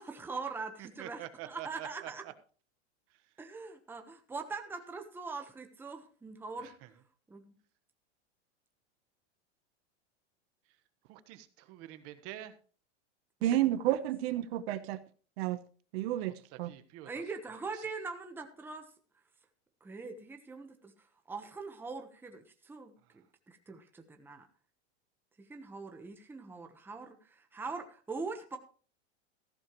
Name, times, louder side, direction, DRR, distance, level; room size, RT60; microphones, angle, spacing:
voice 1, 0.0-2.2 3.4-6.7 7.3-7.4 13.4-13.7 17.1-18.9 19.8-20.9 21.3-24.5 25.5-28.6, right 4 dB, 5° right, 5 dB, 1.1 m, -42 dB
voice 2, 0.8-2.3 3.1-3.2 6.6-6.9 11.1-12.6 16.2-17.2 17.7-17.8 23.1-23.2, right 14 dB, 40° right, 11 dB, 1.3 m, -47 dB
voice 3, 13.4-15.0 15.4-15.6 15.9-16.7, right 13 dB, 60° right, 11 dB, 1.1 m, -31 dB
14.5 x 12.0 x 3.1 m, 0.40 s
supercardioid pair, 150°, 35 cm